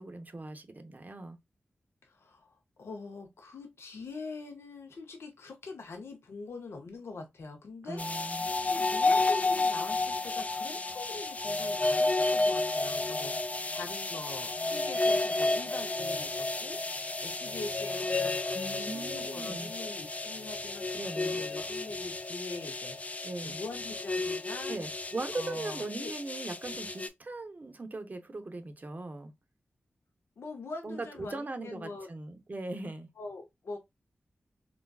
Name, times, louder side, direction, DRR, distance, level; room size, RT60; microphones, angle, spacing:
voice 1, 0.0-1.4 7.8-8.5 18.5-19.7 21.0-21.4 23.2-23.6 24.7-29.3 30.8-33.1, right 2 dB, 40° right, 0.6 m, -39 dB
voice 2, 2.0-24.8 25.3-26.1 30.4-32.1 33.2-33.8, left 3 dB, 85° left, 0.7 m, -44 dB
after nine, 8.0-27.1, left 2 dB, 35° left, 0.4 m, -31 dB
3.9 x 2.2 x 2.2 m
cardioid pair, 50°, 4 cm